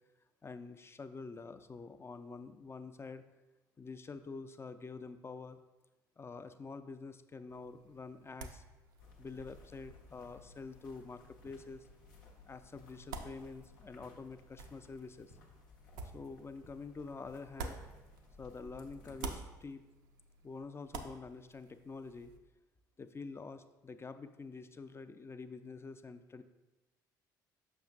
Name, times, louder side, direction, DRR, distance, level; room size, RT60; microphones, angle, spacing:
voice 1, 0.4-3.2 3.8-5.6 6.2-8.6 9.2-11.9 12.5-15.3 16.1-17.8 18.4-19.8 20.4-22.3 23.0-26.4, left 4 dB, 25° left, 10 dB, 0.4 m, -47 dB
sound 1, 7.5-18.7 19.0-22.4, right 4 dB, 75° right, 0.5 m, -50 dB
sound 2, 9.0-19.3, left 3 dB, 80° left, 0.9 m, -59 dB
7.0 x 5.6 x 2.4 m, 1.1 s
hypercardioid pair, 50°, 10 cm